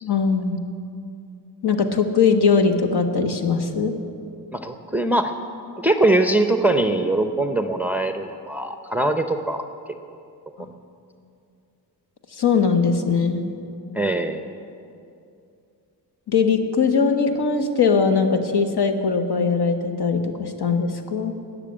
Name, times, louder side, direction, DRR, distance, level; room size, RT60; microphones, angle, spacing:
voice 1, 0.0-0.6 1.6-3.9 10.6-10.7 12.3-13.5 16.3-21.3, left 5 dB, 65° left, 6 dB, 1.3 m, -20 dB
voice 2, 4.5-5.3 5.8-9.7 13.9-14.5, right 2 dB, 5° right, 6 dB, 0.6 m, -22 dB
19.0 x 6.9 x 8.8 m, 2.5 s
wide cardioid pair, 145°, 42 cm